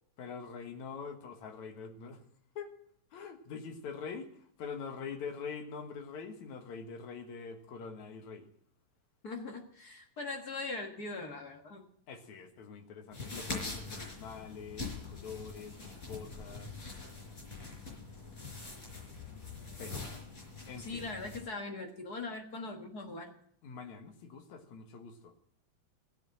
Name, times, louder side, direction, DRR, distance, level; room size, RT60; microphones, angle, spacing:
voice 1, 0.2-2.2 2.6-2.7 3.1-8.5 12.1-16.7 19.8-20.1 20.7-21.0 23.6-25.3, left 5 dB, 65° left, 6 dB, 2.7 m, -44 dB
voice 2, 9.2-11.9 20.8-23.3, left 3 dB, 45° left, 3 dB, 1.3 m, -41 dB
sound 1, 13.1-21.4, left 3 dB, 25° left, 4.7 m, -43 dB
16.0 x 9.0 x 7.6 m, 0.68 s
omnidirectional pair, 3.8 m